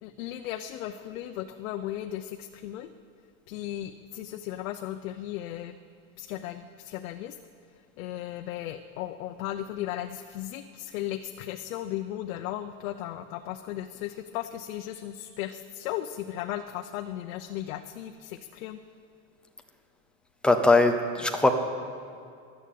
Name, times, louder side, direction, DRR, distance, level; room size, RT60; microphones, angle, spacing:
voice 1, 0.0-2.9 3.5-5.7 6.2-7.4 8.0-18.8, left 12 dB, 90° left, 7 dB, 0.9 m, -36 dB
voice 2, 20.4-21.5, left 2 dB, ahead, 5 dB, 0.6 m, -20 dB
14.0 x 11.5 x 8.6 m, 2.4 s
cardioid pair, 170°, 40 cm